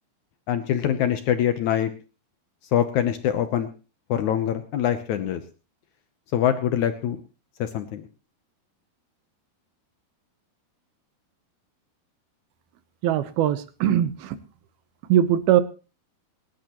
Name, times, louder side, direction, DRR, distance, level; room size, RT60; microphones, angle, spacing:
voice 1, 0.5-1.9 2.7-3.7 4.1-5.4 6.3-7.2 7.6-8.0, left 10 dB, 80° left, 9 dB, 1.7 m, -24 dB
voice 2, 13.0-14.4 15.1-15.6, right 11 dB, 75° right, 13 dB, 2.8 m, -21 dB
27.0 x 11.0 x 3.0 m, 0.33 s
omnidirectional pair, 4.6 m